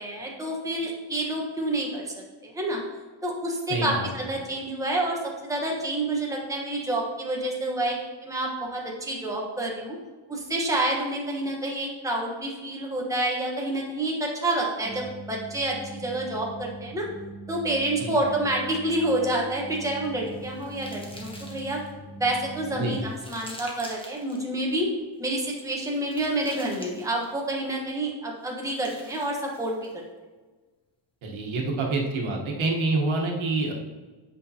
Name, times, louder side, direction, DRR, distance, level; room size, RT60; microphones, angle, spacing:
voice 1, 0.0-2.1 2.4-2.8 3.2-10.0 10.3-17.1 17.5-21.8 22.2-24.9 25.2-30.0, right 1 dB, 5° right, -2 dB, 1.1 m, -28 dB
voice 2, 3.7-4.1 18.0-18.1 22.8-23.0 31.2-33.7, right 2 dB, 85° right, 0 dB, 1.3 m, -27 dB
sound 1, 14.8-23.2, right 2 dB, 55° right, 1.2 m, -41 dB
sound 2, 19.6-21.9 22.5-24.4 25.3-27.5 28.4-30.0, left 1 dB, 10° left, 1.2 m, -47 dB
8.4 x 5.1 x 2.8 m, 1.3 s
wide cardioid pair, 150°, 47 cm